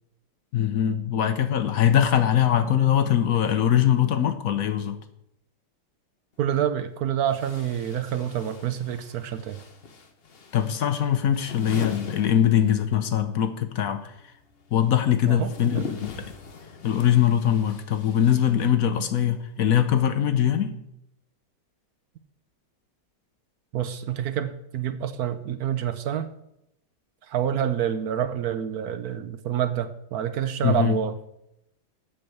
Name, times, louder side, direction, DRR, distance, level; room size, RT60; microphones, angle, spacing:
voice 1, 0.5-5.0 10.5-14.1 14.7-16.3 16.8-20.8 30.6-31.0, left 10 dB, 65° left, 10 dB, 1.1 m, -22 dB
sound 1, 6.3-6.4 7.2-13.1 13.3-19.2, left 5 dB, 40° left, 1.1 m, -41 dB
voice 2, 6.4-9.6 15.2-15.9 23.7-26.3 27.3-31.2, right 9 dB, 70° right, 11 dB, 1.1 m, -27 dB
8.0 x 6.5 x 7.7 m, 0.80 s
omnidirectional pair, 1.8 m